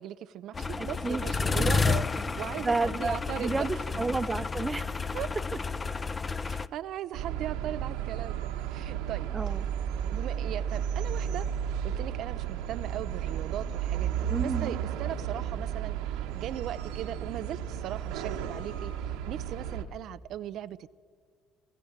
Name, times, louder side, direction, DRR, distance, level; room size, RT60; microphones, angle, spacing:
voice 1, 0.0-3.7 5.1-5.3 6.4-9.6 10.1-11.5 11.8-21.0, right 11 dB, 65° right, 12 dB, 0.5 m, -39 dB
sound 1, 0.5-6.7, left 4 dB, 25° left, 0.7 m, -30 dB
voice 2, 0.8-1.3 1.6-1.7 2.6-5.0 9.3-9.6 14.3-14.7, right 3 dB, 20° right, 14 dB, 0.7 m, -31 dB
sound 2, 7.1-19.8, right 9 dB, 85° right, 1.3 m, -33 dB
23.5 x 16.0 x 7.3 m, 2.1 s
supercardioid pair, 75°, 0 cm